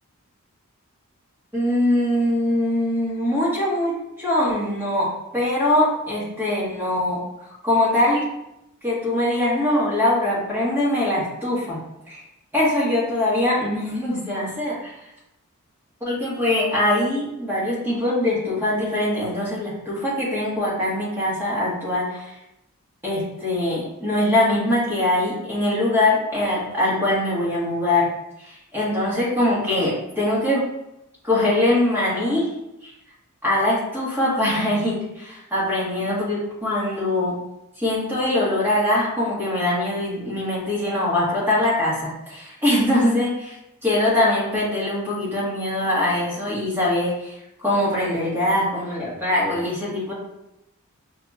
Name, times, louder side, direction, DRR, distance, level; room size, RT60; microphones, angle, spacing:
voice 1, 1.5-5.1 5.3-7.2 7.6-8.2 8.8-11.8 12.1-12.2 12.5-14.9 16.0-22.3 23.0-28.1 28.4-30.6 31.2-32.5 33.4-37.3 37.8-43.5 43.8-47.3 47.6-50.1, left 1 dB, 10° right, -7 dB, 1.4 m, -22 dB
5.6 x 2.9 x 2.4 m, 0.86 s
head